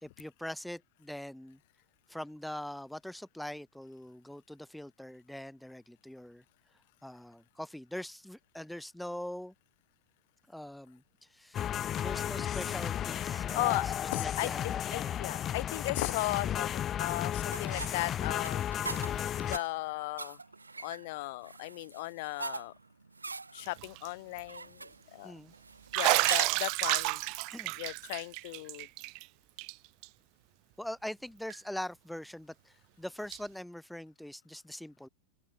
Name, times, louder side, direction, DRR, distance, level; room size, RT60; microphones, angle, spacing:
voice 1, 0.0-1.6 2.1-6.4 7.0-9.5 10.5-11.0 11.3-11.7 12.0-13.9 14.2-15.2 25.2-25.5 27.5-27.8 30.8-35.1, left 1 dB, ahead, 4.9 m, -43 dB
sound 1, 11.5-19.6, left 10 dB, 25° left, 1.9 m, -34 dB
voice 2, 13.5-14.5 14.9-18.6 19.4-20.4 20.8-22.7 23.5-25.3 25.9-27.2 27.8-28.9, left 22 dB, 50° left, 1.7 m, -36 dB
sound 2, 17.5-26.8, right 3 dB, 80° right, 1.5 m, -43 dB
Bathtub (filling or washing), 23.7-24.1 24.4-24.5 25.9-29.2 29.6-29.7 30.0-30.1 31.5-31.6 33.3-33.4, right 32 dB, 45° right, 0.7 m, -30 dB
open air
figure-of-eight pair, 90°, 0 cm